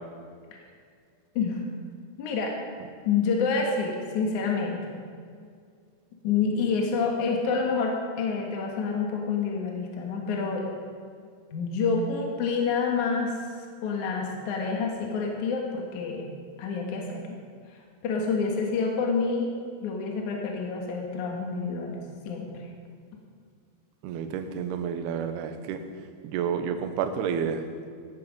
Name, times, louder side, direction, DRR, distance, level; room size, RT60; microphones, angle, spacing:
voice 1, 2.2-2.6 3.1-5.0 6.2-10.6 11.5-13.4 13.8-16.3 16.6-17.4 18.0-19.5 19.8-22.0 22.3-22.6, left 5 dB, 60° left, 0 dB, 2.1 m, -28 dB
voice 2, 24.0-25.8 26.2-27.6, right 7 dB, 85° right, 7 dB, 2.3 m, -30 dB
16.0 x 13.5 x 5.3 m, 2.2 s
omnidirectional pair, 6.0 m